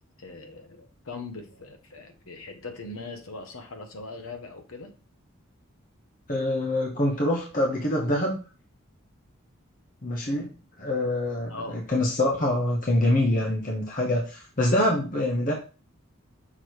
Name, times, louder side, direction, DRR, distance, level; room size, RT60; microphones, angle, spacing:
voice 1, 0.2-4.9 11.5-11.8, left 3 dB, 85° left, 1.1 m, -40 dB
voice 2, 6.3-8.4 10.0-10.5 10.8-15.5, left 1 dB, 40° left, 1.1 m, -25 dB
6.1 x 3.3 x 4.6 m
head